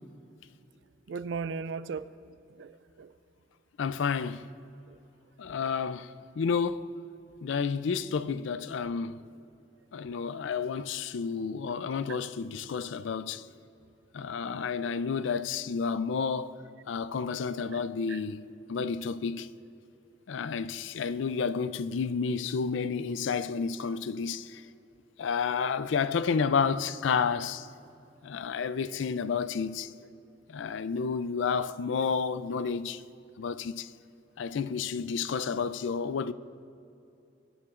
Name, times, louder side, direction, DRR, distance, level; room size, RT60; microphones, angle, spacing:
voice 1, 1.1-2.1 2.6-3.1 4.9-5.0 5.6-5.7 18.1-18.2, right 5 dB, 70° right, 0.4 m, -36 dB
voice 2, 3.8-4.5 5.4-6.9 7.4-9.2 9.9-13.4 14.1-16.5 16.9-19.5 20.3-24.6 25.2-27.7 28.2-29.9 30.5-33.0 33.4-33.9 34.4-36.3, left 5 dB, 75° left, 0.4 m, -31 dB
25.0 x 9.5 x 2.5 m
head